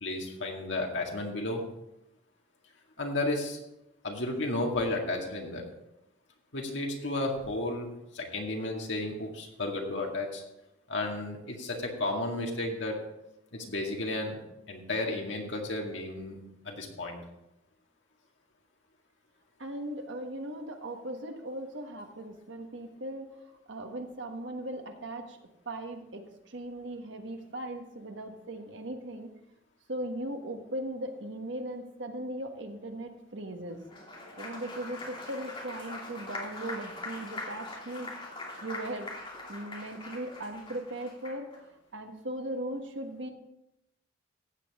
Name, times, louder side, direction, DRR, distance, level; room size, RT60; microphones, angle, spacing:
voice 1, 0.0-1.6 3.0-3.6 4.0-5.6 6.5-10.4 10.9-13.0 13.5-14.4 14.7-17.2, left 2 dB, 70° left, 1 dB, 2.1 m, -33 dB
voice 2, 19.6-25.4 25.6-29.3 29.9-33.8 34.4-38.1 38.6-39.1 39.5-41.5 41.9-43.3, right 1 dB, 65° right, 5 dB, 1.4 m, -38 dB
Applause, 33.8-41.6, left 2 dB, 30° left, 2.7 m, -42 dB
14.5 x 8.5 x 3.6 m, 0.88 s
head